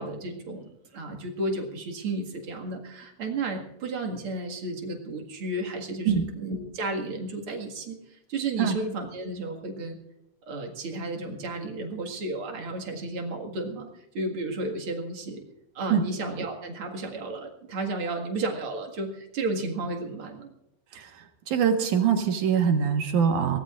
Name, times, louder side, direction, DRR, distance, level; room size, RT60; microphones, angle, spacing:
voice 1, 0.0-10.0 10.5-13.9 14.1-15.4 15.7-20.5, right 2 dB, 45° right, 2 dB, 2.4 m, -33 dB
voice 2, 21.5-23.6, right 7 dB, 70° right, 4 dB, 2.8 m, -23 dB
23.5 x 18.0 x 2.5 m, 0.85 s
omnidirectional pair, 3.8 m